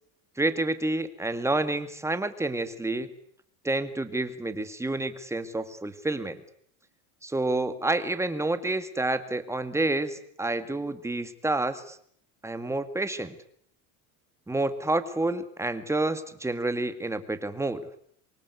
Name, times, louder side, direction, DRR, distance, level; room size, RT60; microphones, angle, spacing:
voice 1, 0.4-3.1 3.6-6.4 7.2-12.0 12.4-13.3 14.5-17.8, right 2 dB, 5° right, 10 dB, 2.2 m, -29 dB
27.5 x 24.0 x 8.3 m, 0.65 s
cardioid pair, 140°, 37 cm